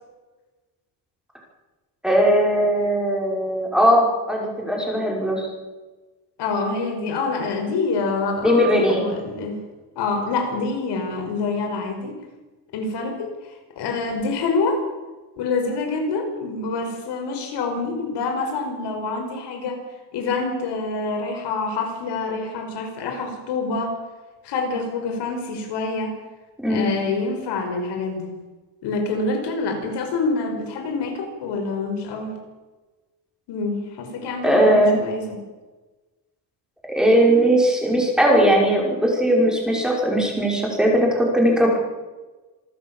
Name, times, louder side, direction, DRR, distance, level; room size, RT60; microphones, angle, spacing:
voice 1, 2.0-5.5 8.4-9.1 26.6-26.9 34.4-35.0 36.9-41.9, right 1 dB, ahead, -1 dB, 5.5 m, -19 dB
voice 2, 6.4-9.6 10.0-12.2 12.7-14.8 15.4-19.8 20.1-24.0 24.4-26.2 26.7-28.3 28.8-32.4 33.5-35.4, left 3 dB, 75° left, 4 dB, 5.5 m, -26 dB
27.0 x 13.5 x 7.3 m, 1.2 s
cardioid pair, 170°, 42 cm